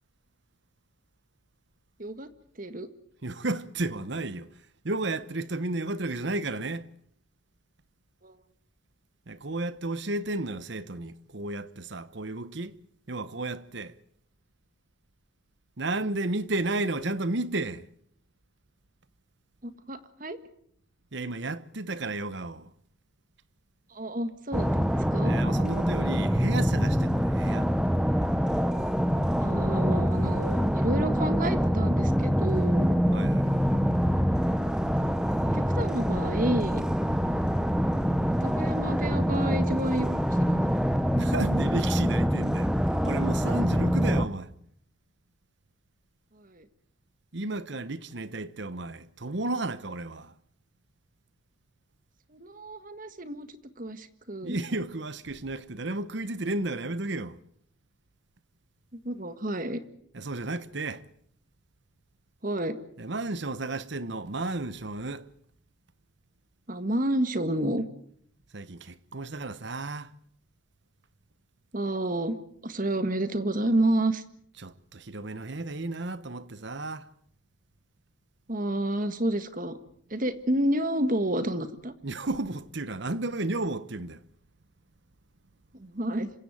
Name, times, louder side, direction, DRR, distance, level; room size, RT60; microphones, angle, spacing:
voice 1, 2.6-2.9 8.2-8.3 19.6-20.4 23.9-25.4 29.4-33.0 35.5-36.8 38.4-40.2 40.5-40.9 46.4-46.6 52.3-53.5 53.8-54.6 58.9-59.8 62.4-62.8 66.7-67.8 71.7-72.4 72.6-74.2 78.5-79.8 80.1-81.9 85.8-86.3, right 1 dB, 40° right, 1.6 m, -30 dB
voice 2, 3.2-4.5 4.8-6.9 9.3-12.7 13.1-13.9 15.8-17.8 21.1-22.7 25.2-27.7 33.1-33.6 41.1-42.7 43.0-44.5 47.3-50.3 54.4-57.4 60.1-61.0 63.0-65.3 68.5-70.1 74.6-77.0 82.0-84.2, right 2 dB, 55° right, 1.0 m, -33 dB
sound 1, 24.5-44.3, equal, 5° right, 0.9 m, -25 dB
26.5 x 16.0 x 9.1 m
head